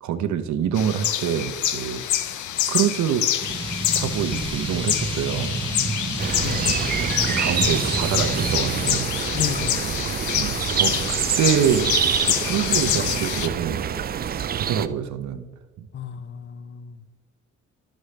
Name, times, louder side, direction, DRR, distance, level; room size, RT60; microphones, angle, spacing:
voice 1, 0.0-2.3 2.7-3.4 3.9-5.7 6.7-6.8 7.2-9.1 10.3-11.9 12.2-13.8 14.5-15.5 15.8-15.9, right 8 dB, 70° right, 9 dB, 0.8 m, -26 dB
sound 1, 0.8-13.5, left 11 dB, 75° left, 0.6 m, -26 dB
sound 2, 3.4-9.0, right 3 dB, 15° right, 1.0 m, -29 dB
sound 3, 6.2-14.9, right 8 dB, 30° right, 0.4 m, -26 dB
voice 2, 6.3-6.7 9.3-9.8 15.9-17.0, left 7 dB, 40° left, 12 dB, 0.6 m, -32 dB
11.5 x 6.4 x 3.2 m, 1.2 s
cardioid pair, 90°, 30 cm